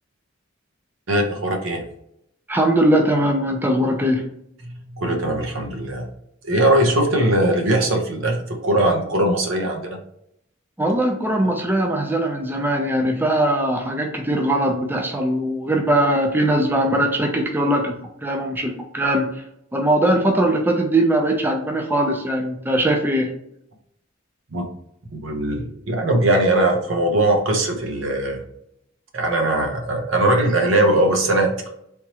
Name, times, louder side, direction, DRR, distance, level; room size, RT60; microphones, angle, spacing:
voice 1, 1.1-1.8 4.6-6.1 6.4-10.0 24.5-24.7 25.1-28.4 29.1-31.5, right 1 dB, 75° right, 2 dB, 0.8 m, -20 dB
voice 2, 2.5-4.2 10.8-17.9 18.2-19.3 19.7-23.3, right 1 dB, 10° right, 2 dB, 0.5 m, -20 dB
3.5 x 3.0 x 2.9 m, 0.77 s
head